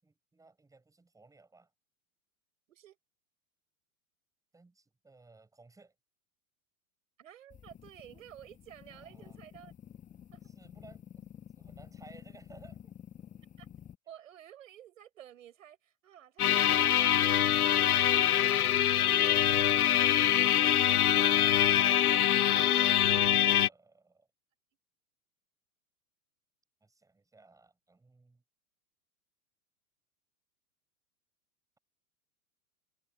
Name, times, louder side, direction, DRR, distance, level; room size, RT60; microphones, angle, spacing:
voice 1, 0.0-1.7 4.5-5.9 9.0-9.4 10.4-13.0 21.4-24.3 26.8-28.4, right 3 dB, 5° right, 8.0 m, -59 dB
voice 2, 7.2-9.7 10.3-10.4 13.6-13.7 14.1-19.7 21.3-22.1, right 11 dB, 60° right, 5.9 m, -53 dB
sound 1, 7.5-14.0, left 9 dB, 15° left, 1.6 m, -51 dB
sound 2, 16.4-23.7, left 11 dB, 75° left, 0.6 m, -24 dB
figure-of-eight pair, 100°, 44 cm